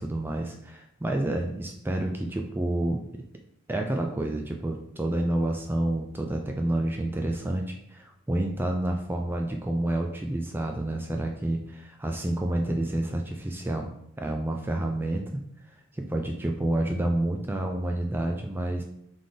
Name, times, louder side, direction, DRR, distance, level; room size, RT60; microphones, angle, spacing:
voice 1, 0.0-3.2 3.7-13.9 14.2-15.2 15.9-18.8, right 1 dB, 10° right, 2 dB, 0.3 m, -29 dB
3.9 x 3.3 x 3.7 m, 0.73 s
head